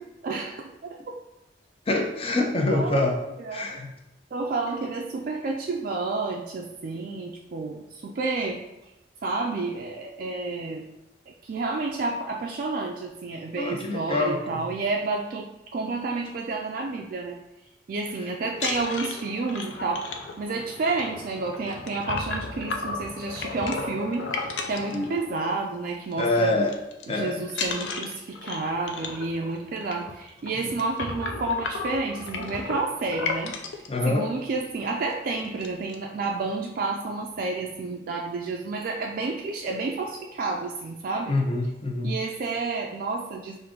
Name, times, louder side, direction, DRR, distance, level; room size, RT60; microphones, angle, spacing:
voice 1, 0.2-1.0 2.7-3.1 3.4-3.8 4.3-8.6 9.2-10.8 11.3-17.4 17.9-26.5 27.1-33.6 34.1-41.4 42.0-43.6, right 3 dB, 50° right, 1 dB, 0.3 m, -30 dB
voice 2, 1.9-3.2 3.5-3.9 13.6-14.6 24.9-25.1 26.2-26.7 27.1-27.4 33.9-34.3 41.3-42.1, left 2 dB, 35° left, 2 dB, 0.6 m, -25 dB
sound 1, 18.5-25.6 25.9-26.2 26.5-27.0 27.5-33.9 34.5-34.6 35.0-35.1 35.4-36.0, left 3 dB, 90° left, 0.5 m, -34 dB
4.7 x 2.6 x 3.7 m, 0.91 s
head